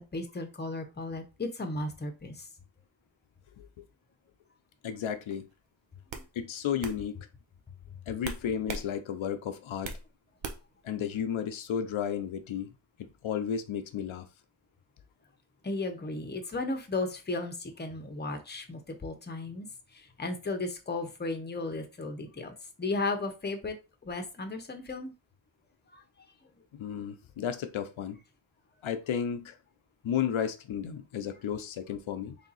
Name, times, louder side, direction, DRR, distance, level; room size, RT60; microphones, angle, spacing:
voice 1, 0.0-2.4 6.1-6.2 15.6-19.7 19.9-23.8 24.0-25.1 25.9-26.0, left 2 dB, 20° left, 0.8 m, -35 dB
voice 2, 4.8-5.5 6.3-7.2 8.1-9.9 10.8-12.7 13.0-14.3 26.7-28.2 28.8-29.6 30.0-32.4, left 8 dB, 85° left, 0.6 m, -33 dB
sound 1, 5.3-5.5 6.1-6.3 6.8-7.0 8.2-8.9 9.2-10.0 10.4-10.8, right 4 dB, 70° right, 0.8 m, -38 dB
3.4 x 2.7 x 4.0 m
wide cardioid pair, 105°, 46 cm